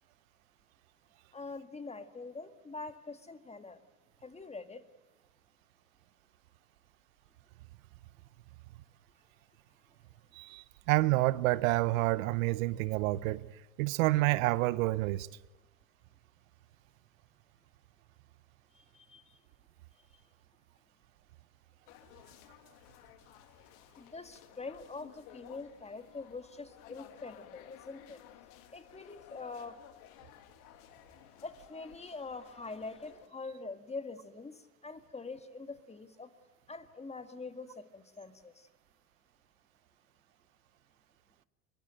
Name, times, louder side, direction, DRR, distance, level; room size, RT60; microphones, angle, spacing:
voice 1, 1.3-3.8 4.2-4.8 18.7-19.4 24.0-28.2 28.7-29.8 31.4-36.3 36.7-38.7, left 3 dB, 15° left, 2.0 m, -44 dB
voice 2, 10.3-13.4 13.8-15.3, right 19 dB, 70° right, 0.8 m, -28 dB
sound 1, 21.9-33.3, left 13 dB, 60° left, 1.9 m, -56 dB
23.5 x 23.0 x 9.2 m
hypercardioid pair, 90°, 42 cm